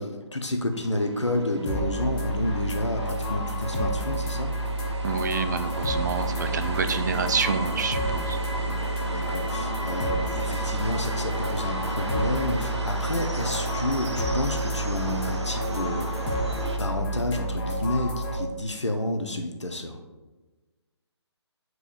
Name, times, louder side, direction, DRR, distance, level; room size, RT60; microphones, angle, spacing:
voice 1, 0.0-4.5 6.4-6.6 8.7-8.8 9.1-20.0, left 1 dB, 85° left, 4 dB, 0.8 m, -30 dB
sound 1, 0.7-16.8, right 2 dB, 70° right, 0.9 m, -35 dB
sound 2, 1.7-18.4, right 1 dB, 20° left, 1.1 m, -30 dB
voice 2, 5.0-8.4, right 5 dB, 40° right, 9 dB, 0.5 m, -28 dB
8.5 x 4.7 x 2.5 m, 1.2 s
figure-of-eight pair, 145°, 15 cm